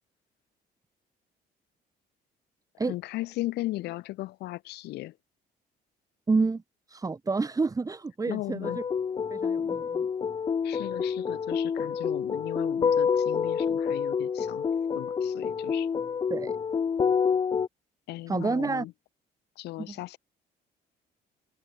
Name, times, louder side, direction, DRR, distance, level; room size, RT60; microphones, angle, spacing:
voice 1, 2.9-5.1 8.3-8.8 10.6-14.7 15.0-15.9 18.1-18.9 19.6-20.2, left 17 dB, 80° left, 1.8 m, -37 dB
voice 2, 6.3-6.6 6.9-8.8 9.3-10.1 16.3-16.6 18.3-18.9 19.8-20.0, right 4 dB, 20° right, 2.5 m, -29 dB
sound 1, 8.6-17.7, left 6 dB, 30° left, 0.6 m, -28 dB
cardioid pair, 110°, 17 cm